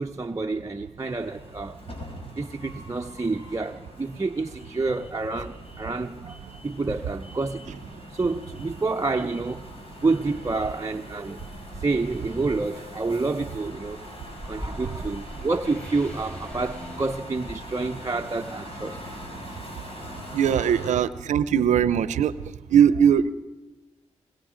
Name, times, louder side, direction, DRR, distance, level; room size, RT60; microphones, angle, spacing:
voice 1, 0.0-1.8 2.4-6.4 6.6-7.8 8.1-9.7 10.0-11.4 11.8-14.0 14.4-19.0 19.5-19.6 20.6-20.8, right 3 dB, 25° right, 4 dB, 0.7 m, -28 dB
sound 1, 1.0-20.9, left 1 dB, 50° left, 5.3 m, -42 dB
sound 2, 11.2-17.2, equal, 10° left, 5.1 m, -42 dB
voice 2, 20.3-22.3 22.7-23.3, right 8 dB, 90° right, 16 dB, 0.6 m, -20 dB
25.0 x 21.5 x 5.1 m, 1.2 s
cardioid pair, 55°, 12 cm